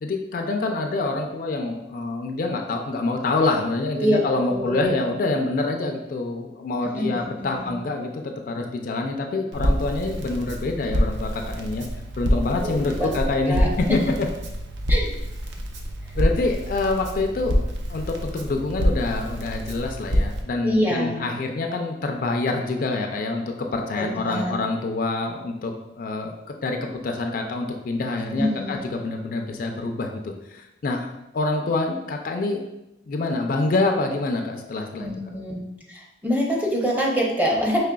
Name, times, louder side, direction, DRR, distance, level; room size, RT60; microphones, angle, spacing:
voice 1, 0.0-11.9 12.1-14.0 16.1-17.6 17.9-23.4 23.7-26.3 26.6-26.8 27.0-32.6 33.1-35.1, left 3 dB, 50° left, 3 dB, 0.3 m, -26 dB
voice 2, 4.5-5.0 6.9-7.7 12.5-13.1 13.5-14.1 14.9-15.1 20.6-21.2 24.0-24.5 28.4-28.8 35.0-35.6 35.9-37.8, equal, 10° right, -3 dB, 0.6 m, -25 dB
Crackle, 9.5-20.4, equal, 70° right, 0.5 m, -26 dB
4.9 x 3.2 x 2.3 m, 0.93 s
head